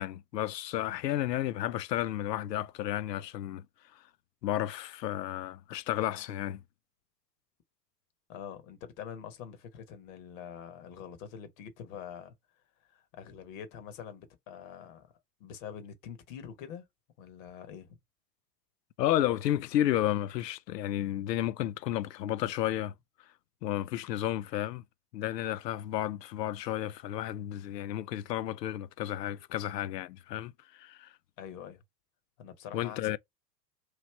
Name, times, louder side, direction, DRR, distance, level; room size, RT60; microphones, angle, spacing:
voice 1, 0.0-3.6 4.4-6.6 19.0-22.9 23.6-24.8 25.1-31.1 32.7-33.2, left 12 dB, 80° left, 0.5 m, -32 dB
voice 2, 8.3-12.3 12.9-15.1 15.4-16.8 17.2-18.0 31.4-31.8 32.4-33.2, left 8 dB, 50° left, 1.3 m, -45 dB
3.1 x 2.8 x 4.3 m
hypercardioid pair, 95°, 49 cm